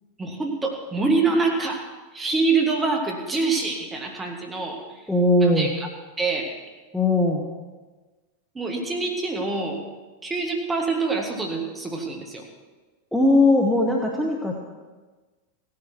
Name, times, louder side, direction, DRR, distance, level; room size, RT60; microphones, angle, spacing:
voice 1, 0.2-1.9 2.1-4.8 5.4-5.7 6.2-6.5 8.5-9.8 10.2-12.4, right 3 dB, 15° right, 2 dB, 2.4 m, -25 dB
voice 2, 5.1-5.7 6.9-7.4 13.1-14.6, left 2 dB, ahead, -2 dB, 1.6 m, -19 dB
16.5 x 12.5 x 4.6 m, 1.3 s
figure-of-eight pair, 90°, 0 cm